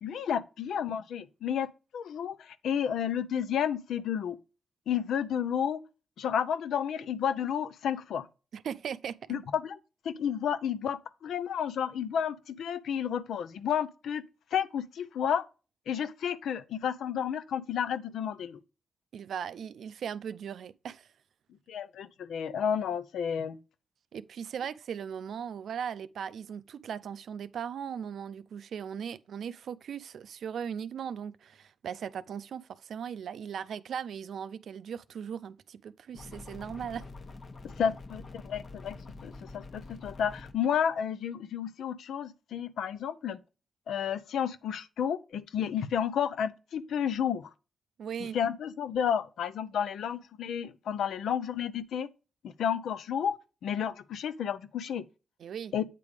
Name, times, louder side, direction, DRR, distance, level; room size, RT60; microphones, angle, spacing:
voice 1, 0.0-4.4 4.9-5.8 6.2-8.3 9.3-9.8 10.0-14.2 14.5-15.5 15.9-18.6 21.7-23.6 37.8-39.0 39.2-43.4 43.9-47.5 48.3-52.1 52.4-53.4 53.6-55.0 55.7-55.8, left 8 dB, 85° left, 0.5 m, -31 dB
voice 2, 8.5-9.2 19.1-21.1 24.1-37.1 48.0-48.4 55.4-55.7, right 8 dB, 80° right, 0.4 m, -38 dB
sound 1, 36.1-40.5, left 3 dB, 55° left, 1.0 m, -46 dB
8.3 x 3.5 x 4.8 m
supercardioid pair, 50°, 0 cm